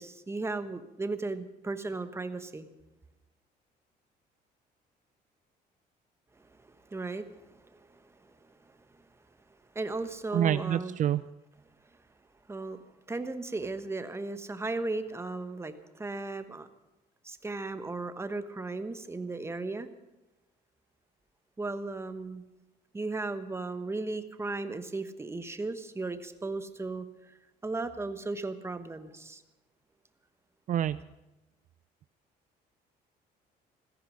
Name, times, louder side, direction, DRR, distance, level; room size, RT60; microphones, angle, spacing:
voice 1, 0.0-2.7 6.4-9.0 9.7-11.0 12.5-12.8 13.1-16.7 17.2-19.9 21.6-22.4 22.9-27.4 27.6-29.4, right 3 dB, 15° right, 10 dB, 1.2 m, -36 dB
voice 2, 10.3-11.2 30.7-31.0, right 11 dB, 50° right, 14 dB, 0.4 m, -27 dB
15.5 x 14.0 x 6.4 m, 1.0 s
cardioid pair, 110°, 17 cm